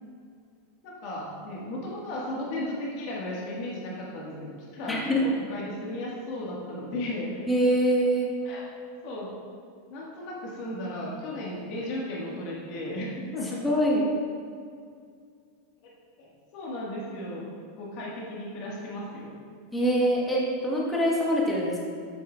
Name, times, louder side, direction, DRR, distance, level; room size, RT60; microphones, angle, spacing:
voice 1, 0.8-7.4 8.4-8.6 9.0-9.3 9.9-13.6 15.8-15.9 16.2-17.5 17.8-19.3, left 1 dB, 50° left, -4 dB, 1.6 m, -35 dB
voice 2, 4.9-5.2 7.5-8.3 13.6-14.0 19.7-21.9, equal, 10° left, -4 dB, 1.2 m, -24 dB
8.7 x 6.3 x 2.4 m, 2.2 s
supercardioid pair, 150°, 0 cm